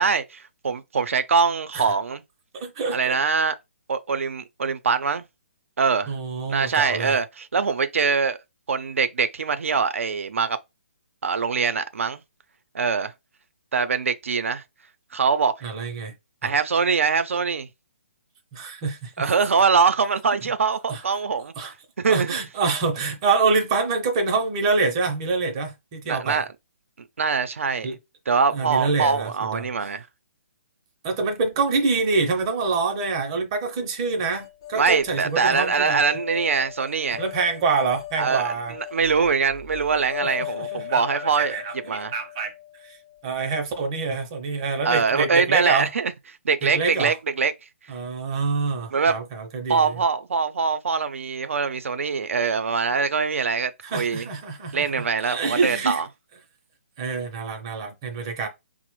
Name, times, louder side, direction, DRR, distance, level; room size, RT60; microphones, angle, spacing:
voice 1, 0.0-2.2 2.9-3.6 3.9-5.2 5.8-6.1 6.5-8.4 8.7-10.6 11.2-12.2 12.7-13.1 13.7-14.6 15.1-15.5 16.4-17.7 19.2-21.5 22.0-22.3 26.1-26.5 27.2-27.9 28.3-30.1 34.7-37.2 38.2-41.6 41.9-42.1 44.8-46.1 46.4-47.5 48.9-49.1 49.7-54.3 54.7-56.1, right 5 dB, 80° right, 0.4 m, -23 dB
voice 2, 2.5-3.2 6.1-7.2 15.6-16.1 16.4-16.5 18.5-19.3 20.9-21.0 21.6-21.7 22.1-26.4 27.8-28.0 28.5-29.7 31.0-36.0 37.2-38.7 40.2-42.5 42.8-43.0 43.2-45.9 46.6-47.2 47.9-49.9 53.8-56.0 57.0-58.5, right 4 dB, 25° right, 0.5 m, -26 dB
sound 1, 34.3-43.5, left 13 dB, 25° left, 0.3 m, -38 dB
4.0 x 2.0 x 3.0 m
hypercardioid pair, 165°, 7 cm